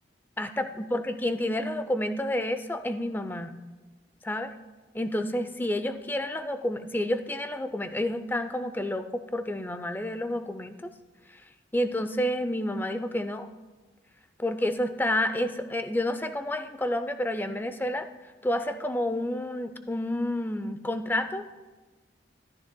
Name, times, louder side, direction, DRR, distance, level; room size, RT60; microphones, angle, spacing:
voice 1, 0.4-3.6 4.2-4.5 4.9-10.9 11.3-11.4 11.7-13.5 14.4-18.1 18.4-21.6, left 1 dB, 10° left, 9 dB, 0.4 m, -29 dB
14.5 x 13.0 x 2.2 m, 1.3 s
head